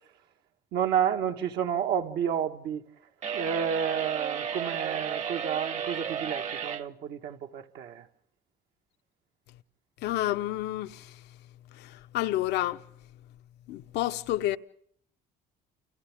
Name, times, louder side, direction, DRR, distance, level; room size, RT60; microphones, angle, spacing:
voice 1, 0.7-2.8 3.3-8.1, right 8 dB, 75° right, 1.6 m, -30 dB
sound 1, 3.2-6.8, right 7 dB, 45° right, 1.2 m, -33 dB
voice 2, 10.0-11.0 12.1-12.8 13.7-14.6, left 14 dB, 85° left, 1.0 m, -29 dB
29.5 x 29.5 x 3.6 m
cardioid pair, 110°, 17 cm